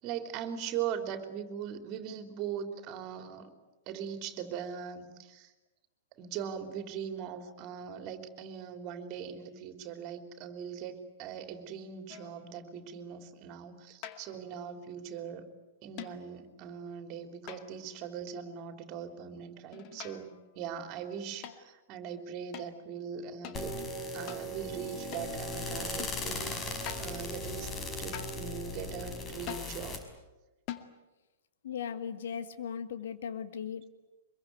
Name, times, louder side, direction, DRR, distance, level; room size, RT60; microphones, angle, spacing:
voice 1, 0.0-3.5 3.9-5.5 6.2-15.5 15.8-23.7 24.1-30.0, right 8 dB, 40° right, 7 dB, 3.5 m, -40 dB
sound 1, 12.1-12.5 14.0-14.4 16.0-16.3 17.5-18.0 19.7-20.4 21.4-21.6 22.5-22.7 23.4-23.6 24.3-24.5 25.1-25.4 26.0-26.2 26.9-27.2 28.1-28.5 29.5-29.8 30.7-31.0, left 11 dB, 40° left, 2.1 m, -44 dB
sound 2, 23.5-30.0, left 1 dB, 25° left, 5.3 m, -38 dB
voice 2, 31.6-33.9, left 7 dB, 65° left, 10 dB, 2.1 m, -38 dB
25.0 x 22.5 x 9.4 m, 1.1 s
figure-of-eight pair, 105°, 0 cm